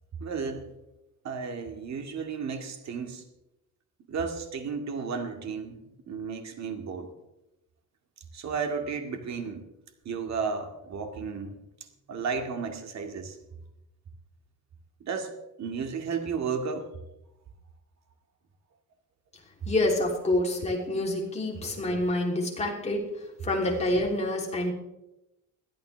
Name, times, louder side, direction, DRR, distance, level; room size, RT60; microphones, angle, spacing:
voice 1, 0.2-0.7 1.2-3.2 4.1-5.8 6.1-7.1 8.3-9.6 10.1-11.6 12.1-13.4 15.0-15.3 15.6-16.9, right 5 dB, 60° right, 5 dB, 2.1 m, -33 dB
voice 2, 19.6-23.1 23.4-24.7, left 1 dB, 20° left, -1 dB, 3.3 m, -27 dB
21.5 x 13.0 x 3.4 m, 0.91 s
cardioid pair, 165°, 31 cm